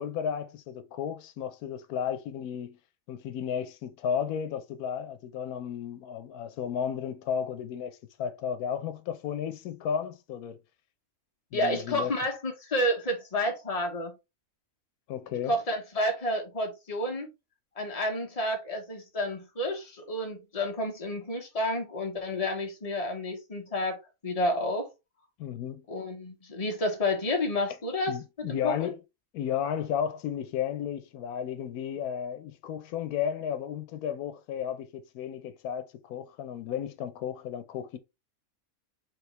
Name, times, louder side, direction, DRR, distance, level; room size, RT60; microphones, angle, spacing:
voice 1, 0.0-2.8 3.1-10.6 11.5-12.1 15.1-15.5 25.4-25.8 28.1-29.0 29.3-38.0, left 8 dB, 90° left, 1.1 m, -33 dB
voice 2, 11.5-14.1 15.5-17.3 17.8-24.9 25.9-28.2 28.5-28.9, left 1 dB, 25° left, 1.2 m, -30 dB
4.5 x 3.4 x 3.2 m
omnidirectional pair, 1.5 m